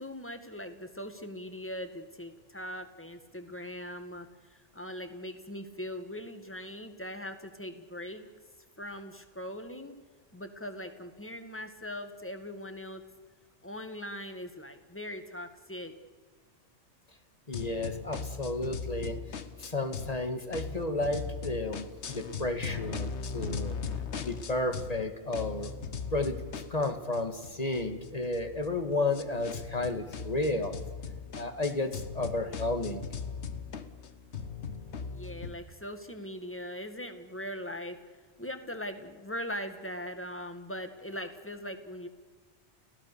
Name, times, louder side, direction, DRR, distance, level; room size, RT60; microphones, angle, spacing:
voice 1, 0.0-8.3 8.8-10.0 10.3-13.0 13.6-16.0 35.1-38.0 38.4-42.1, equal, 10° left, 8 dB, 1.8 m, -40 dB
sound 1, 17.5-20.2 20.5-25.0 25.3-35.5, left 5 dB, 70° left, 1.4 m, -39 dB
voice 2, 17.5-19.2 19.6-23.8 24.2-25.7 26.1-26.4 26.7-30.8 31.3-33.1, left 2 dB, 35° left, 7 dB, 1.8 m, -32 dB
29.5 x 17.0 x 7.0 m, 1.4 s
omnidirectional pair, 1.2 m